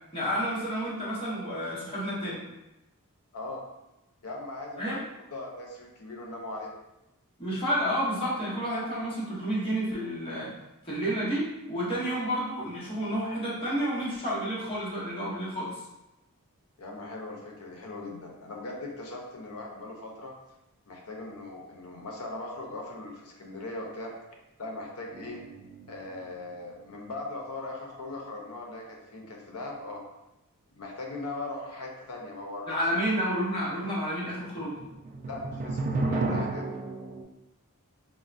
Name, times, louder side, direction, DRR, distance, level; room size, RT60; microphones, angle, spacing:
voice 1, 0.1-2.4 4.8-5.0 7.4-10.5 10.8-15.8 32.7-34.8, equal, 25° left, -8 dB, 0.9 m, -30 dB
voice 2, 4.2-5.0 5.3-6.7 16.8-20.3 20.9-24.1 24.6-25.4 25.9-30.0 30.8-33.0 35.2-36.8, left 2 dB, 75° left, 0 dB, 0.6 m, -39 dB
sound 1, 25.1-26.8 27.2-27.3 34.6-37.2, right 2 dB, 35° right, 0.3 m, -33 dB
3.6 x 2.1 x 2.5 m, 0.95 s
head